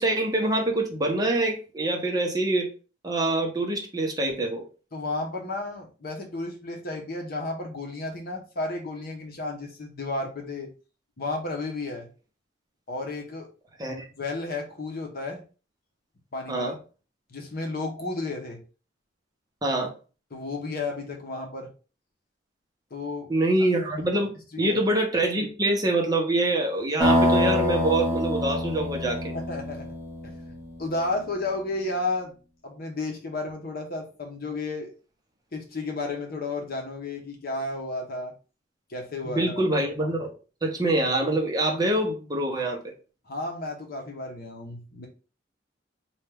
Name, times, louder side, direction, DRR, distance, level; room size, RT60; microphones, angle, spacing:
voice 1, 0.0-2.7 3.0-4.6 13.8-14.1 16.5-16.8 19.6-19.9 23.3-24.3 24.6-29.3 39.2-40.3 40.6-42.9, right 2 dB, 20° right, 1 dB, 0.8 m, -25 dB
voice 2, 4.9-10.7 11.2-12.1 12.9-13.5 14.1-15.4 16.3-16.7 17.3-18.6 20.3-21.7 22.9-23.3 24.5-24.8 29.3-29.9 30.2-30.5 30.8-32.3 32.6-34.9 35.5-38.3 38.9-39.6 43.3-45.1, left 2 dB, 55° left, 2 dB, 0.9 m, -32 dB
sound 1, 27.0-30.8, left 1 dB, 5° left, 1.9 m, -25 dB
4.3 x 2.3 x 3.4 m, 0.34 s
head